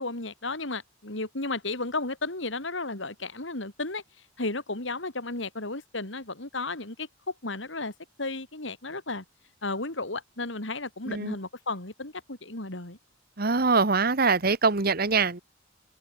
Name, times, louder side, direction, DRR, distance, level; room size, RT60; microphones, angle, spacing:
voice 1, 0.0-4.0 4.4-7.1 7.4-7.9 8.2-9.2 9.6-13.0, left 2 dB, 70° left, 3.5 m, -33 dB
voice 2, 13.4-15.4, right 4 dB, 50° right, 1.4 m, -23 dB
open air
head